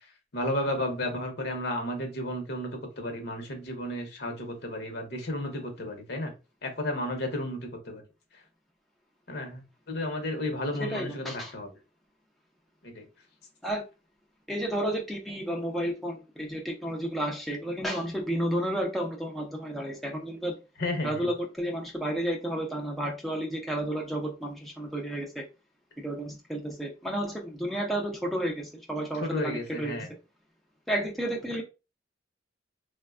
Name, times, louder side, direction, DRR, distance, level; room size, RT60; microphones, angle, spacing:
voice 1, 0.3-2.7 3.0-6.3 6.6-8.0 9.3-11.7 12.8-13.1 20.8-21.2 29.1-30.1, left 1 dB, 60° left, 0.8 m, -33 dB
voice 2, 10.8-11.5 13.6-13.8 14.5-20.5 21.0-25.4 26.0-30.1 30.9-31.6, right 1 dB, ahead, 0.4 m, -32 dB
3.3 x 2.1 x 2.3 m
head